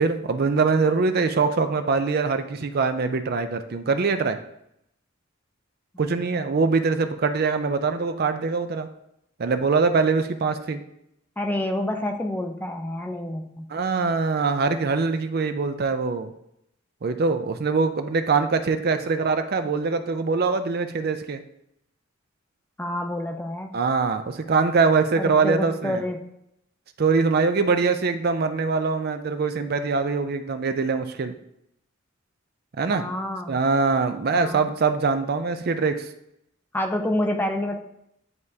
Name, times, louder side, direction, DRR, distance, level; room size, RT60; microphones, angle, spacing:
voice 1, 0.0-4.4 6.0-8.9 9.4-10.8 13.7-16.3 17.0-21.4 23.7-26.0 27.0-31.3 32.8-33.0 33.5-36.1, right 4 dB, 50° right, 8 dB, 0.5 m, -23 dB
voice 2, 11.4-13.7 22.8-23.8 25.2-26.2 32.9-33.6 34.3-34.6 36.7-37.8, left 1 dB, 10° left, 3 dB, 0.5 m, -28 dB
9.5 x 3.6 x 2.7 m, 0.77 s
head